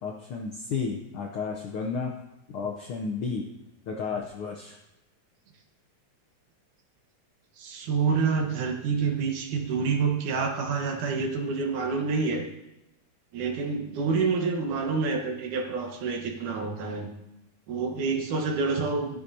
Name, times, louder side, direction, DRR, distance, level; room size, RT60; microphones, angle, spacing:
voice 1, 0.0-2.1 2.5-3.5 3.9-4.8, left 5 dB, 75° left, 1 dB, 1.2 m, -32 dB
voice 2, 7.6-12.4 13.3-17.1 17.7-19.2, right 4 dB, 85° right, 2 dB, 2.8 m, -27 dB
14.0 x 9.9 x 2.8 m, 0.93 s
omnidirectional pair, 3.4 m